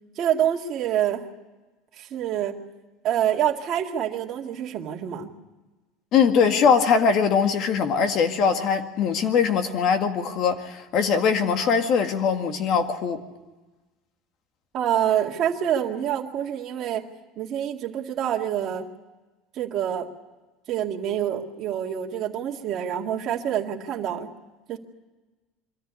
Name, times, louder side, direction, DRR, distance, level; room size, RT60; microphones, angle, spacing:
voice 1, 0.2-1.2 2.0-2.6 3.0-5.3 14.7-17.1 17.4-18.9 19.6-20.1 20.7-24.3 24.7-24.8, right 10 dB, 40° right, 0 dB, 2.1 m, -26 dB
voice 2, 6.1-13.2, left 6 dB, 45° left, 6 dB, 1.9 m, -21 dB
23.5 x 14.0 x 8.4 m, 1.2 s
cardioid pair, 145°, 0 cm